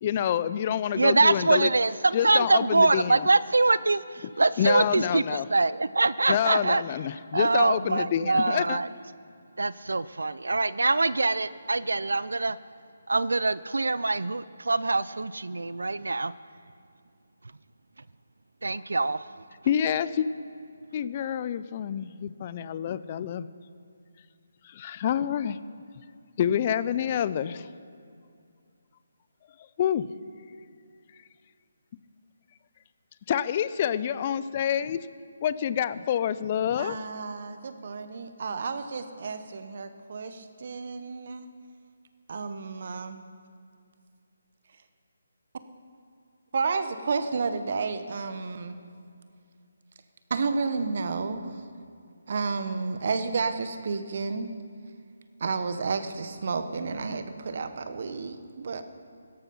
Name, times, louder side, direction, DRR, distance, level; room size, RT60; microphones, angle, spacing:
voice 1, 0.0-1.7 2.1-3.3 4.6-5.5 6.3-8.8 19.6-20.3 20.9-23.5 24.6-25.6 26.4-27.7 29.8-30.0 33.3-35.0 35.4-37.0, left 9 dB, 35° left, 15 dB, 0.5 m, -27 dB
voice 2, 1.0-6.8 7.3-8.9 9.6-12.6 13.1-16.3 18.6-19.2, right 3 dB, 80° right, 17 dB, 0.5 m, -24 dB
voice 3, 36.8-41.5 42.3-43.2 46.5-48.8 50.3-51.6 52.3-54.5 55.4-58.8, right 4 dB, 55° right, 10 dB, 1.2 m, -31 dB
17.0 x 13.5 x 5.6 m, 2.3 s
figure-of-eight pair, 155°, 0 cm